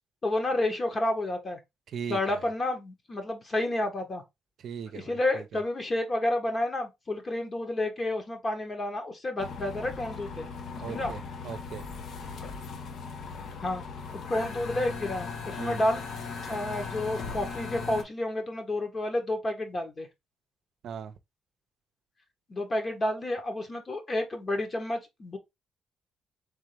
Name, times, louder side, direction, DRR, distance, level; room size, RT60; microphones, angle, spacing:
voice 1, 0.2-1.6 2.1-4.2 4.9-10.5 10.9-11.1 13.6-13.8 14.1-16.0 16.5-20.1 22.5-25.4, left 1 dB, 35° left, 1.3 m, -30 dB
voice 2, 1.9-2.4 4.6-5.4 10.8-11.8 15.6-15.8 20.8-21.1, right 7 dB, 65° right, 0.6 m, -38 dB
sound 1, 9.4-18.0, left 5 dB, 65° left, 0.9 m, -38 dB
3.7 x 3.6 x 3.3 m
cardioid pair, 90°, 0 cm